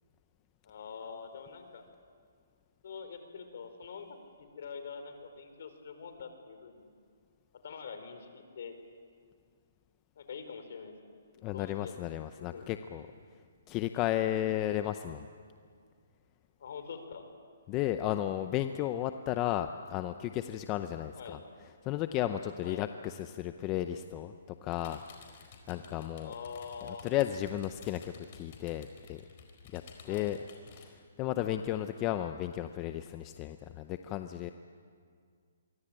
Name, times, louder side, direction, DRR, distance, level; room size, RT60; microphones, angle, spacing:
voice 1, 0.6-1.8 2.8-6.9 7.6-8.8 10.2-10.9 11.5-11.9 12.4-12.6 16.6-17.3 21.2-21.4 22.6-22.8 26.2-27.0 30.1-30.3, left 6 dB, 55° left, 8 dB, 4.2 m, -45 dB
voice 2, 11.4-13.1 13.7-15.3 17.7-21.4 21.8-25.0 25.4-26.3 26.8-29.2 29.7-30.4 30.7-34.5, left 12 dB, 20° left, 9 dB, 0.6 m, -34 dB
sound 1, 24.7-30.9, left 6 dB, 40° left, 4.4 m, -54 dB
26.5 x 24.0 x 8.9 m, 2.1 s
hypercardioid pair, 165°, 0 cm